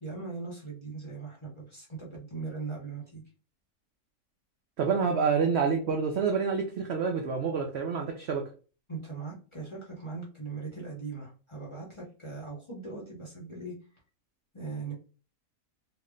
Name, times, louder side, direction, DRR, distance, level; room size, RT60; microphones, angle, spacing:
voice 1, 0.0-3.2 8.9-13.7 14.5-14.9, right 4 dB, 25° left, 0.7 m, -39 dB
voice 2, 4.8-8.5, right 5 dB, 70° right, 0.6 m, -28 dB
3.2 x 2.1 x 3.6 m
omnidirectional pair, 1.6 m